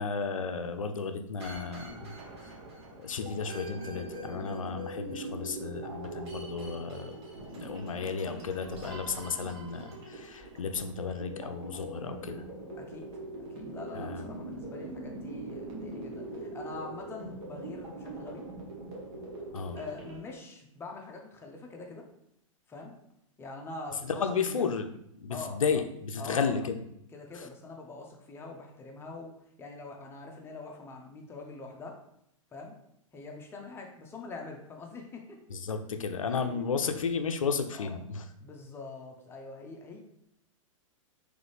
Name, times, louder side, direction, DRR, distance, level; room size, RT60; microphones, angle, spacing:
voice 1, 0.0-2.1 2.4-2.5 3.0-7.1 7.5-12.4 13.9-14.2 19.5-19.8 24.0-24.9 25.2-26.8 27.3-27.5 35.5-38.2, left 5 dB, 75° left, 7 dB, 0.5 m, -33 dB
sound 1, 1.4-20.2, right 2 dB, 50° right, 1.2 m, -42 dB
voice 2, 13.5-18.4 19.7-22.0 22.7-22.9 23.4-24.7 25.3-25.6 26.2-26.5 27.1-29.3 29.6-32.0 32.5-32.7 33.1-35.2 36.3-36.7 37.7-38.0 38.4-40.0, left 3 dB, 15° left, 1 dB, 0.6 m, -44 dB
3.8 x 3.2 x 3.2 m, 0.76 s
figure-of-eight pair, 105°, 17 cm